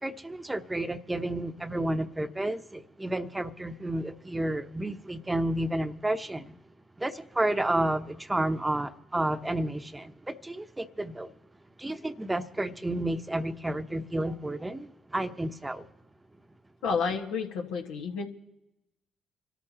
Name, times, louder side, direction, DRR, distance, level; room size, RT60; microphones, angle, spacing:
voice 1, 0.0-6.5 7.0-11.3 11.8-15.9, right 1 dB, 15° right, 1.0 m, -31 dB
voice 2, 16.8-18.3, left 5 dB, 80° left, 1.5 m, -30 dB
26.5 x 13.5 x 3.0 m
hypercardioid pair, 50°, 0 cm